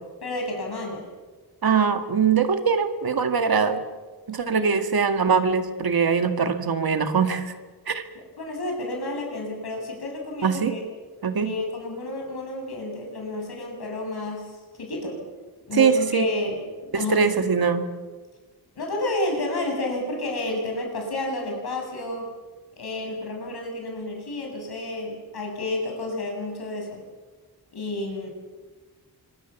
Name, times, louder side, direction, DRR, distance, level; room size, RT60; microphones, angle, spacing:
voice 1, 0.2-1.1 4.5-4.7 8.1-10.8 11.4-15.2 15.7-17.3 18.8-22.3 22.8-27.0 27.7-28.3, left 2 dB, 80° left, 1 dB, 7.8 m, -31 dB
voice 2, 1.6-3.8 4.3-7.5 7.9-8.0 10.4-10.7 11.2-11.5 15.8-16.3 16.9-17.9, right 6 dB, 65° right, 7 dB, 2.1 m, -22 dB
26.0 x 22.5 x 7.3 m, 1.4 s
wide cardioid pair, 135°, 38 cm